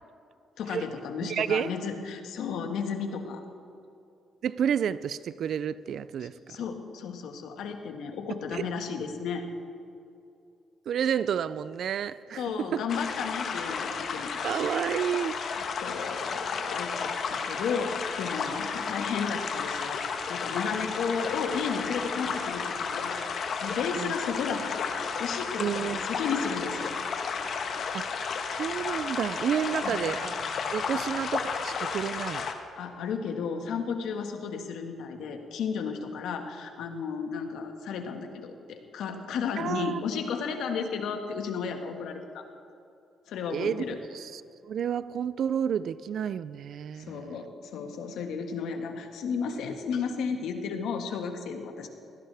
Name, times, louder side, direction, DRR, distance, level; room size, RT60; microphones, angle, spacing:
voice 1, 0.6-3.4 6.2-9.4 12.4-14.7 15.8-20.0 20.3-22.6 22.9-24.9 25.2-27.0 29.8-30.0 30.9-31.0 32.8-42.5 43.3-44.0 46.9-51.9, left 6 dB, 80° left, 5 dB, 1.7 m, -33 dB
voice 2, 1.3-1.7 4.4-6.3 8.5-8.6 10.9-12.4 12.7-12.8 14.4-15.3 23.9-24.1 25.6-26.1 27.9-28.1 28.5-32.5 39.6-40.0 43.5-43.8 44.1-47.3, right 8 dB, 65° right, 17 dB, 0.4 m, -30 dB
sound 1, 12.9-32.5, left 5 dB, 60° left, 1.4 m, -32 dB
21.0 x 16.5 x 3.5 m, 2.6 s
cardioid pair, 90°, 0 cm